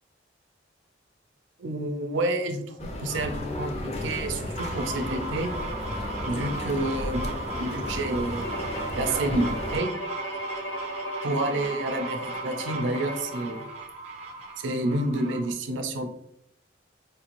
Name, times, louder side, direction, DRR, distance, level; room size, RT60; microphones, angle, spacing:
voice 1, 1.6-5.5 6.3-8.6 8.9-9.9 11.2-13.7 14.6-16.1, right 1 dB, 80° right, 5 dB, 0.5 m, -29 dB
sound 1, 2.8-9.8, left 1 dB, 35° left, 0.5 m, -33 dB
sound 2, 4.6-15.5, right 3 dB, 35° right, 0.6 m, -37 dB
Bowed string instrument, 8.4-13.8, right 1 dB, 85° left, 1.1 m, -37 dB
4.7 x 2.6 x 2.9 m, 0.78 s
head